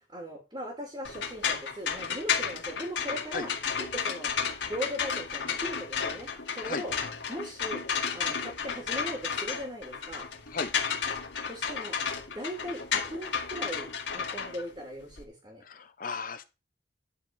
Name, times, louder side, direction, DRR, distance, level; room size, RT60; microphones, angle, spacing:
voice 1, 0.1-3.5 3.8-4.3 4.6-6.9 7.3-7.8 8.1-10.3 11.4-12.0 12.3-15.6, equal, 25° right, 1 dB, 2.6 m, -39 dB
sound 1, 1.0-15.2, left 6 dB, 90° left, 2.0 m, -32 dB
voice 2, 15.6-16.4, left 4 dB, 50° left, 10 dB, 1.0 m, -35 dB
11.0 x 4.7 x 5.5 m, 0.28 s
head